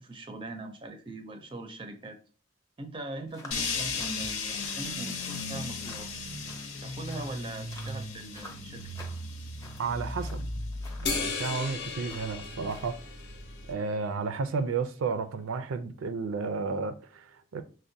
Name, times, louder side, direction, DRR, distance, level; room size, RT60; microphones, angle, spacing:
voice 1, 0.0-2.2 2.8-6.1 6.8-8.9, right 2 dB, 25° right, 0.4 m, -41 dB
sound 1, 3.3-13.3, left 2 dB, 15° left, 0.7 m, -52 dB
sound 2, 3.5-13.7, left 3 dB, 85° left, 0.9 m, -37 dB
voice 2, 9.8-10.5 11.0-13.0 13.7-17.6, right 4 dB, 85° right, 0.4 m, -32 dB
sound 3, 11.1-13.8, left 4 dB, 55° left, 0.6 m, -35 dB
6.1 x 2.1 x 2.6 m
head